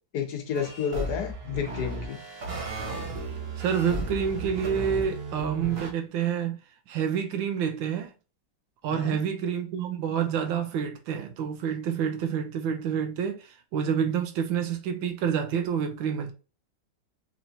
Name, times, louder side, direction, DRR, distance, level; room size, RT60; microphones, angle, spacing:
voice 1, 0.1-2.2 8.9-9.2, left 7 dB, 60° left, 1.3 m, -31 dB
sound 1, 0.5-5.9, right 2 dB, 50° right, 0.8 m, -35 dB
voice 2, 3.2-6.6 6.9-8.1 8.8-16.3, right 7 dB, 90° right, 1.4 m, -28 dB
4.1 x 3.1 x 2.8 m
omnidirectional pair, 2.1 m